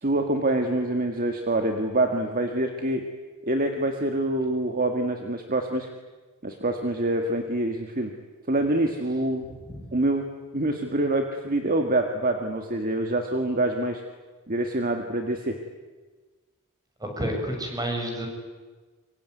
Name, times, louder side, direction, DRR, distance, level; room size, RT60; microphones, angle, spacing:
voice 1, 0.0-3.0 3.4-5.9 6.4-8.1 8.5-9.4 9.9-10.2 10.5-14.0 14.5-15.6, right 1 dB, 40° right, 5 dB, 1.9 m, -25 dB
voice 2, 17.0-18.3, equal, 15° right, 2 dB, 7.0 m, -29 dB
25.0 x 24.5 x 9.6 m, 1.4 s
head